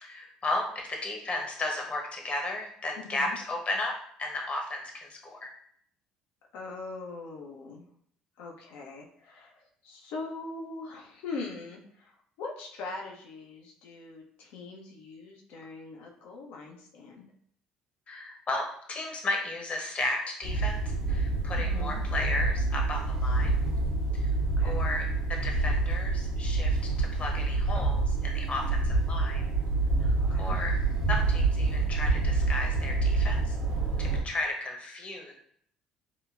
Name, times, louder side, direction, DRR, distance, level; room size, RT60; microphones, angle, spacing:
voice 1, 0.0-5.5 18.1-23.6 24.1-24.2 24.6-25.0 25.3-29.4 30.0-30.7 31.1-33.6 34.0-35.3, left 2 dB, 40° left, 1 dB, 0.9 m, -34 dB
voice 2, 3.0-3.4 6.5-7.8 8.4-17.3 21.6-22.0 24.6-24.8 30.3-30.6, left 3 dB, 70° left, 0 dB, 0.6 m, -42 dB
sound 1, 20.4-34.2, right 3 dB, 75° right, 0.7 m, -27 dB
3.7 x 2.2 x 2.4 m, 0.65 s
hypercardioid pair, 60°, 3 cm